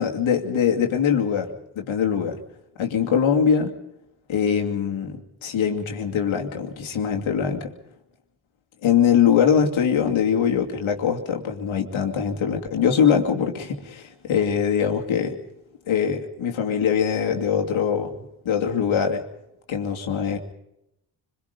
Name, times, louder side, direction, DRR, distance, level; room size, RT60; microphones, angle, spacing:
voice 1, 0.0-1.5 1.8-2.4 2.8-3.7 4.3-7.7 8.8-15.3 15.9-19.2 19.7-20.4, left 7 dB, 75° left, 2 dB, 2.7 m, -22 dB
25.0 x 22.0 x 5.3 m, 0.82 s
supercardioid pair, 45°, 48 cm